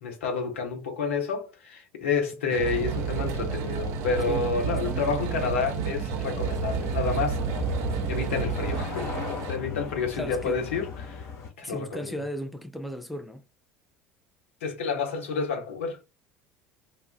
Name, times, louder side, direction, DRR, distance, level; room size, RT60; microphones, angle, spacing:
voice 1, 0.0-7.4 8.1-11.3 11.6-12.1 14.6-16.0, left 5 dB, 75° left, 0.8 m, -29 dB
sound 1, 2.5-9.6, right 6 dB, 50° right, 0.6 m, -30 dB
voice 2, 4.3-5.2 10.1-10.6 11.6-13.4, equal, ahead, 0.4 m, -36 dB
sound 2, 6.3-11.5, left 5 dB, 45° left, 1.0 m, -36 dB
2.3 x 2.0 x 3.6 m
figure-of-eight pair, 65°, 7 cm